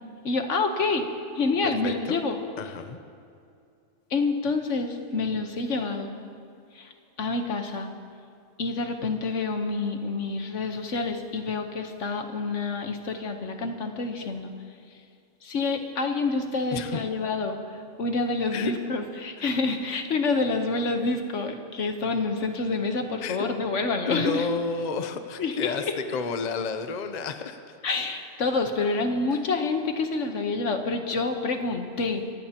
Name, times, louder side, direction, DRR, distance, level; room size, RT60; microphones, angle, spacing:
voice 1, 0.2-2.4 4.1-6.1 6.7-6.9 7.2-7.9 8.6-14.5 15.4-24.5 25.4-25.7 27.8-32.2, left 3 dB, 70° left, 5 dB, 1.4 m, -28 dB
voice 2, 1.6-2.2 2.6-3.0 16.7-17.0 18.5-18.7 23.2-23.5 24.1-27.7 29.3-29.4, left 4 dB, 40° left, 8 dB, 0.7 m, -31 dB
25.5 x 15.5 x 2.9 m, 2.4 s
omnidirectional pair, 1.3 m